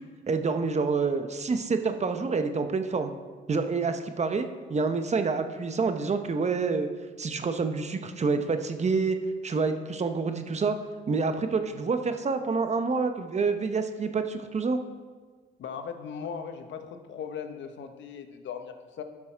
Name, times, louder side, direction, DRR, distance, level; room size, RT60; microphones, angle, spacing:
voice 1, 0.3-3.1 3.5-6.9 7.2-9.2 9.4-10.8 11.1-14.8, right 4 dB, 35° right, 7 dB, 0.8 m, -27 dB
voice 2, 15.6-19.0, left 7 dB, 70° left, 7 dB, 1.0 m, -38 dB
12.0 x 6.1 x 4.5 m, 1.5 s
cardioid pair, 90°, 20 cm